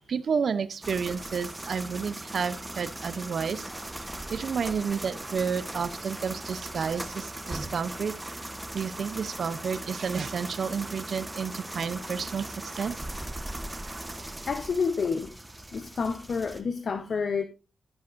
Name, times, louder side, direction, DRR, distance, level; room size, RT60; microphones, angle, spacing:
voice 1, 0.0-3.9 4.3-8.1 8.7-13.0, right 6 dB, 65° right, 0.6 m, -31 dB
sound 1, 0.8-16.6, right 1 dB, 10° right, 1.0 m, -39 dB
voice 2, 14.5-15.3 15.7-17.4, left 5 dB, 55° left, 0.7 m, -29 dB
11.5 x 10.5 x 2.5 m
wide cardioid pair, 160°, 0 cm